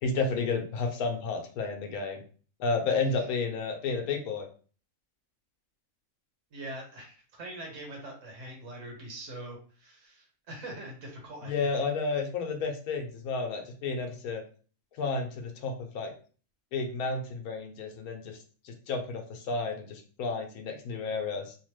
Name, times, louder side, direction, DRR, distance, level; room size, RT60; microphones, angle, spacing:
voice 1, 0.0-2.2 2.6-4.5 11.4-14.4 15.0-16.1 16.7-18.4 18.6-21.6, left 4 dB, 75° left, 4 dB, 1.1 m, -31 dB
voice 2, 6.5-11.7, right 1 dB, 60° right, 0 dB, 1.3 m, -43 dB
2.9 x 2.0 x 3.1 m, 0.40 s
omnidirectional pair, 1.6 m